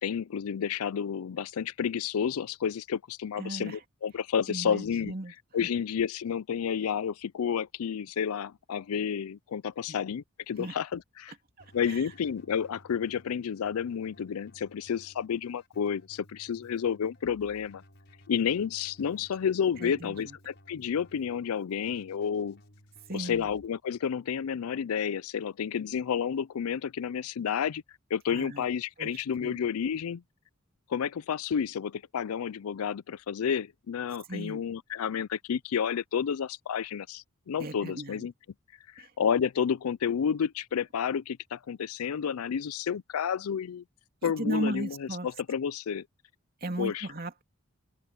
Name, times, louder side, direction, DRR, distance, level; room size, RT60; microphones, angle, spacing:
voice 1, 0.0-5.1 5.5-11.3 11.7-17.8 18.3-22.6 23.1-27.8 28.1-30.2 30.9-38.3 39.2-43.8 44.2-46.0 46.8-47.1, left 7 dB, 85° left, 0.4 m, -30 dB
voice 2, 3.4-3.8 4.5-5.3 9.9-10.0 10.6-10.8 11.8-12.0 19.8-20.4 23.1-23.5 28.3-28.7 29.0-29.6 34.3-34.6 37.6-38.2 39.0-39.1 44.2-45.3 46.6-47.4, right 1 dB, 45° right, 2.9 m, -36 dB
Keyboard (musical), 11.6-23.7, equal, 50° left, 6.8 m, -58 dB
head